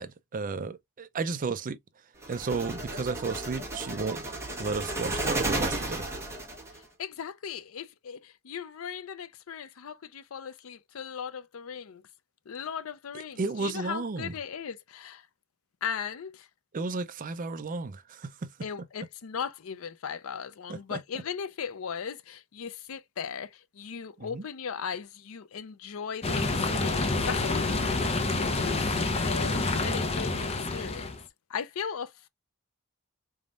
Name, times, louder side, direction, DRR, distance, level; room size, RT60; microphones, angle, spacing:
voice 1, 0.0-1.8 2.3-4.2 4.6-6.1 13.4-14.3 16.7-18.5 20.7-21.0 24.2-24.4, right 4 dB, 40° right, 0.5 m, -33 dB
sound 1, 2.2-6.8, right 1 dB, 15° right, 1.2 m, -33 dB
voice 2, 6.7-12.0 12.5-15.3 15.8-16.5 18.6-31.2 31.5-32.3, left 7 dB, 70° left, 0.5 m, -38 dB
sound 2, 26.2-31.2, left 3 dB, 30° left, 0.8 m, -28 dB
4.1 x 3.5 x 2.4 m
head